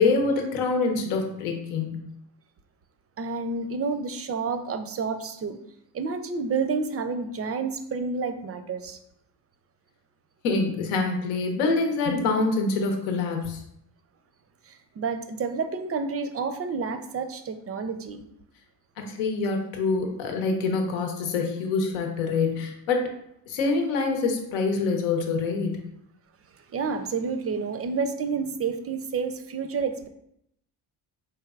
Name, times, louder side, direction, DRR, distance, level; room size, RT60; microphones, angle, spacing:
voice 1, 0.0-2.0 10.4-13.6 19.0-23.1 23.5-25.8, left 4 dB, 85° left, 3 dB, 0.9 m, -25 dB
voice 2, 3.2-5.6 5.9-9.0 14.7-18.2 26.7-30.1, right 5 dB, 30° right, 9 dB, 0.5 m, -29 dB
4.3 x 3.3 x 2.3 m, 0.77 s
supercardioid pair, 60°, 48 cm